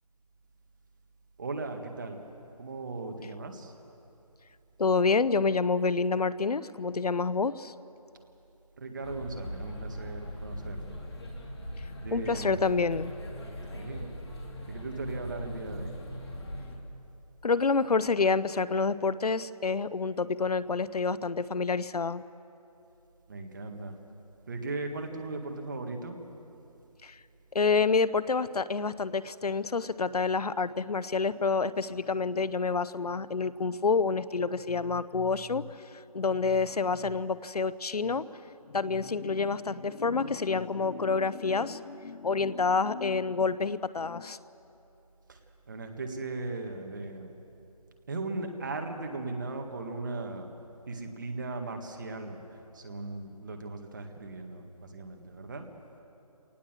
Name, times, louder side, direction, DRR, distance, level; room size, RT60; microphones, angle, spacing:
voice 1, 1.4-2.2 2.6-3.7 8.8-11.0 12.0-12.6 13.7-14.1 14.7-16.0 23.3-24.0 24.5-26.2 45.3-45.4 45.7-47.4 48.1-50.5 50.9-52.4 52.7-55.7, right 3 dB, 30° right, 4 dB, 1.8 m, -37 dB
voice 2, 4.8-7.7 12.1-13.1 17.4-22.2 27.0-27.2 27.5-38.4 38.7-44.4, left 4 dB, 80° left, 17 dB, 0.7 m, -28 dB
sound 1, 9.0-16.8, equal, 45° left, 2.9 m, -40 dB
26.0 x 19.0 x 7.5 m, 2.8 s
figure-of-eight pair, 170°, 20 cm